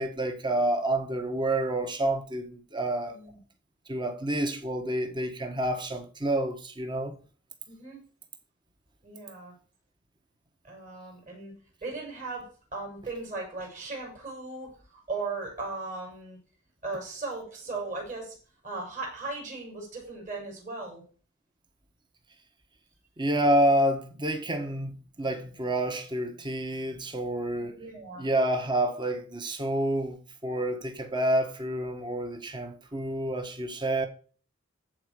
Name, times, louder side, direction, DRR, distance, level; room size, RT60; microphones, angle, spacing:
voice 1, 0.0-3.2 3.9-7.1 23.2-27.8 28.2-34.1, right 1 dB, 25° right, 1.5 m, -28 dB
voice 2, 3.1-3.4 7.7-8.0 9.0-9.5 10.6-11.5 11.8-16.4 16.8-18.4 18.6-21.0 27.5-28.2, right 3 dB, 40° right, 6.3 m, -37 dB
14.0 x 4.8 x 7.0 m
head